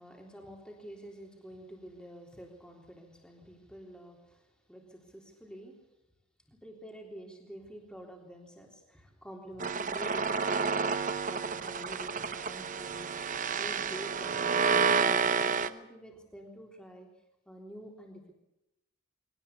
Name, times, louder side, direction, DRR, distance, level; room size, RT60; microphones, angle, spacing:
voice 1, 0.0-5.8 6.5-13.2 13.5-17.1 17.5-18.3, right 1 dB, 5° left, 0 dB, 3.6 m, -48 dB
sound 1, 9.6-15.7, right 5 dB, 35° right, 0.8 m, -30 dB
23.0 x 18.5 x 8.4 m, 0.90 s
head